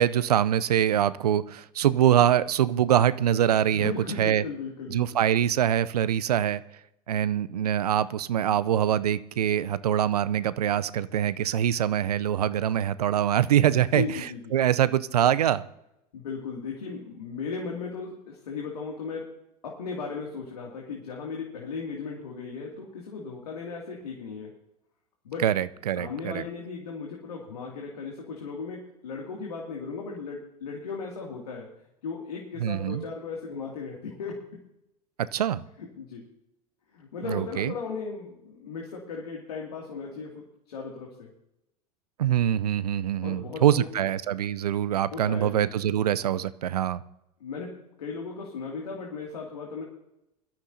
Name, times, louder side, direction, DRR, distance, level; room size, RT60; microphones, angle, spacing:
voice 1, 0.0-3.9 4.2-4.4 4.9-6.6 7.1-14.0 14.5-15.6 25.4-26.4 32.6-33.0 35.3-35.6 37.3-37.7 42.2-47.0, right 10 dB, 75° right, 17 dB, 0.6 m, -24 dB
voice 2, 3.7-5.2 13.8-14.6 16.1-24.6 25.2-25.5 26.0-31.7 32.0-34.5 36.0-36.3 36.9-41.3 43.2-44.1 45.1-45.7 47.4-49.8, left 4 dB, 75° left, -1 dB, 2.5 m, -36 dB
22.0 x 13.5 x 2.7 m, 0.85 s
figure-of-eight pair, 85°, 20 cm